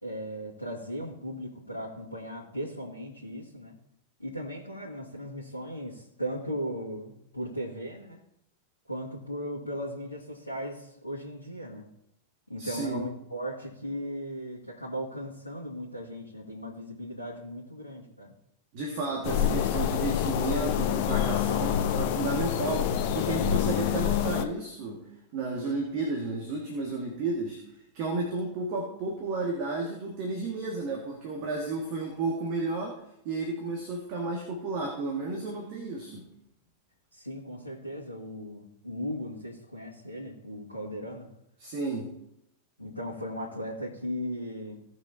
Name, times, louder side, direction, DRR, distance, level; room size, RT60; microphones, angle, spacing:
voice 1, 0.0-3.8 4.2-8.2 8.9-11.9 12.5-18.4 37.1-41.3 42.8-44.8, equal, 90° left, 1.8 m, -37 dB
voice 2, 12.6-13.0 18.7-25.0 25.3-27.6 27.9-33.0 33.2-36.2 41.6-42.1, right 3 dB, 45° right, 1.9 m, -32 dB
sound 1, 19.2-24.5, left 10 dB, 45° left, 0.8 m, -27 dB
17.5 x 6.2 x 2.8 m
figure-of-eight pair, 90°, 0 cm